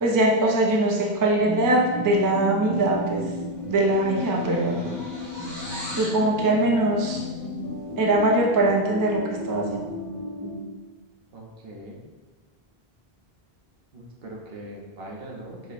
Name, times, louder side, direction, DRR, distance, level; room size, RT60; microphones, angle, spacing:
voice 1, 0.0-3.2 3.7-4.9 6.0-7.3 8.0-9.2 9.5-9.9, right 1 dB, 30° right, -1 dB, 0.4 m, -22 dB
sound 1, 1.4-10.5, equal, 40° left, 1.4 m, -34 dB
sound 2, 3.0-3.3 3.5-6.2, equal, 20° left, 0.9 m, -39 dB
voice 2, 11.3-12.0 13.9-15.7, right 1 dB, 75° right, -1 dB, 0.9 m, -41 dB
4.8 x 2.1 x 4.1 m, 1.3 s
omnidirectional pair, 1.0 m